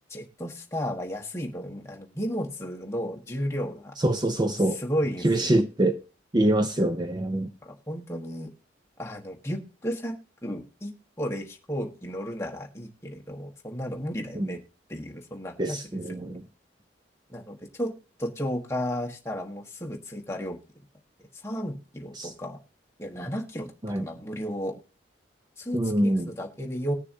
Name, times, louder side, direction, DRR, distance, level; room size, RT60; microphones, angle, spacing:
voice 1, 0.1-3.9 4.7-5.6 7.6-8.5 9.0-14.6 14.9-15.8 16.1-16.4 17.3-17.9 18.2-20.6 21.4-22.6 23.0-24.7 25.6-27.0, equal, 15° left, 1.2 m, -33 dB
voice 2, 4.0-4.8 5.2-6.0 6.3-7.5 14.4-14.5 15.6-16.4 22.2-22.3 23.8-24.0 25.7-26.3, right 1 dB, 20° right, 0.5 m, -24 dB
20.0 x 6.7 x 2.7 m
head